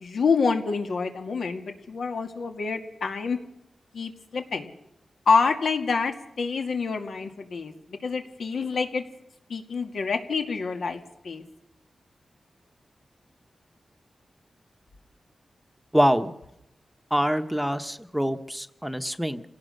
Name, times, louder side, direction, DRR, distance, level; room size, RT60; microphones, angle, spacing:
voice 1, 0.0-3.4 3.9-4.7 5.3-9.0 9.5-11.4, left 5 dB, 80° left, 5 dB, 2.3 m, -27 dB
voice 2, 15.9-16.3 17.1-19.4, equal, ahead, 9 dB, 1.0 m, -25 dB
27.0 x 17.5 x 6.7 m, 0.85 s
wide cardioid pair, 100°, 0 cm